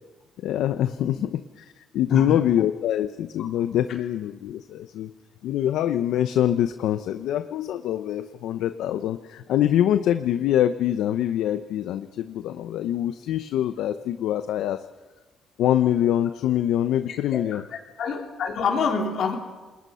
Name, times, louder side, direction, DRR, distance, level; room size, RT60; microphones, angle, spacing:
voice 1, 0.4-5.1 5.4-14.8 15.6-17.6, left 11 dB, 85° left, 10 dB, 0.8 m, -24 dB
voice 2, 17.1-17.4 17.7-19.4, left 5 dB, 70° left, 2 dB, 4.3 m, -26 dB
29.0 x 21.0 x 5.7 m, 1.2 s
cardioid pair, 90°, 0 cm